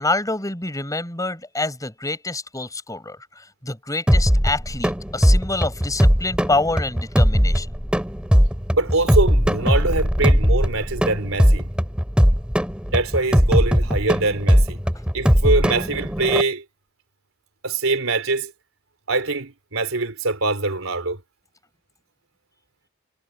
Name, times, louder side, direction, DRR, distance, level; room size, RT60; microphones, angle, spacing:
voice 1, 0.0-7.7, left 2 dB, 15° left, 7.2 m, -26 dB
sound 1, 4.1-16.4, equal, 5° right, 3.4 m, -19 dB
voice 2, 8.7-11.7 12.9-14.8 15.1-16.6 17.6-18.5 19.1-21.2, right 3 dB, 80° right, 3.7 m, -23 dB
head